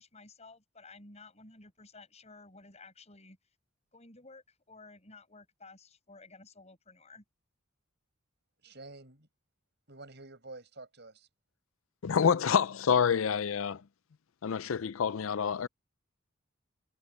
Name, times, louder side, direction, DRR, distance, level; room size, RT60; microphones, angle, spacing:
voice 1, 0.0-3.4 3.9-7.2, left 3 dB, 30° left, 7.4 m, -54 dB
voice 2, 8.6-9.3 9.9-11.3, right 2 dB, 55° right, 7.9 m, -49 dB
voice 3, 12.0-13.8 14.4-15.7, left 7 dB, 80° left, 0.5 m, -27 dB
head